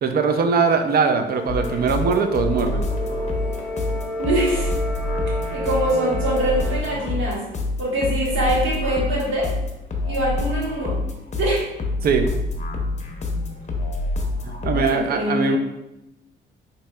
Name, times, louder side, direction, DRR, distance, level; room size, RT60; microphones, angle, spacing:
voice 1, 0.0-2.8 12.0-12.3 14.4-15.6, right 5 dB, 50° right, 6 dB, 0.4 m, -21 dB
sound 1, 1.3-7.1, equal, 5° right, 0.7 m, -31 dB
sound 2, 1.5-15.0, left 2 dB, 35° left, 0.6 m, -27 dB
voice 2, 4.2-4.7 5.5-7.4 7.8-9.5 10.0-11.0 11.3-11.7 14.7-15.6, right 1 dB, 80° right, -5 dB, 1.3 m, -23 dB
4.1 x 2.8 x 2.2 m, 0.90 s
cardioid pair, 90°, 20 cm